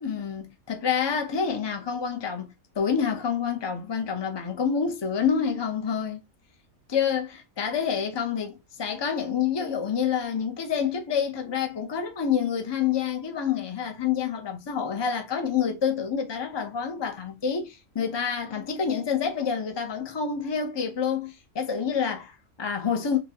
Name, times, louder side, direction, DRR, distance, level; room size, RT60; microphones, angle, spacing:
voice 1, 0.0-6.2 6.9-23.2, left 7 dB, 30° left, 0.5 m, -28 dB
6.2 x 2.2 x 2.8 m
omnidirectional pair, 1.5 m